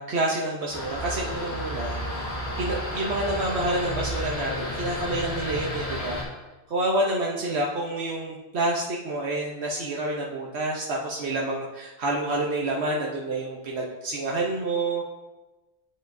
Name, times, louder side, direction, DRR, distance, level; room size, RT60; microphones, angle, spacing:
voice 1, 0.0-6.2 6.7-15.0, right 2 dB, 80° right, -2 dB, 1.0 m, -28 dB
sound 1, 0.7-6.2, left 1 dB, 70° left, 1.9 m, -32 dB
9.1 x 5.4 x 2.6 m, 1.1 s
omnidirectional pair, 1.1 m